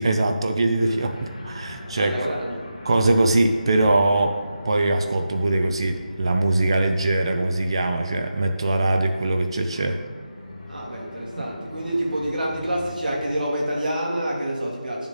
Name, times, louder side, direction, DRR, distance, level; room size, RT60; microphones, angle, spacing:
voice 1, 0.0-2.3 2.8-10.0 11.4-11.5, right 2 dB, 35° right, 6 dB, 0.6 m, -22 dB
sound 1, 0.8-13.0, left 1 dB, 35° left, 2.0 m, -40 dB
voice 2, 2.0-2.6 10.7-15.1, right 1 dB, 70° right, -2 dB, 2.9 m, -27 dB
10.5 x 7.1 x 4.0 m, 1.5 s
figure-of-eight pair, 170°, 5 cm